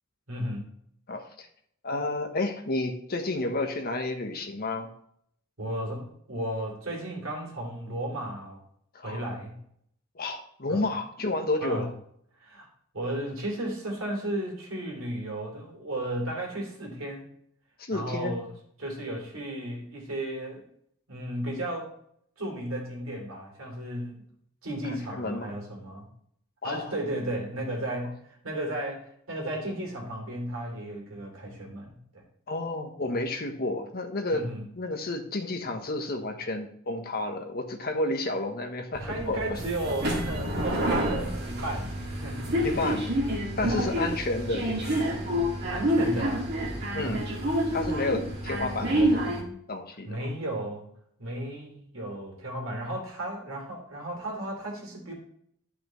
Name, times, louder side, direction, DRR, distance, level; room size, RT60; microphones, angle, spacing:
voice 1, 0.3-0.7 5.6-8.6 9.0-9.6 10.7-10.8 11.6-11.9 12.4-12.7 12.9-17.3 17.9-18.5 18.8-20.6 21.1-21.9 22.4-24.3 24.6-26.1 26.6-32.2 34.3-34.7 39.0-41.9 42.2-42.6 43.6-44.0 45.7-46.5 47.0-47.3 50.0-50.9 51.2-55.1, right 1 dB, 65° right, -1 dB, 2.9 m, -34 dB
voice 2, 1.1-1.5 1.8-4.9 8.9-9.2 10.1-11.9 17.8-18.3 25.2-25.5 26.6-26.9 32.5-34.5 34.8-39.6 42.6-43.0 43.6-45.1 46.9-47.2 47.7-49.4 49.7-50.2, left 2 dB, 45° left, 5 dB, 1.1 m, -31 dB
sound 1, 39.0-49.4, equal, 50° right, 2.1 m, -28 dB
10.0 x 5.8 x 3.1 m, 0.69 s
head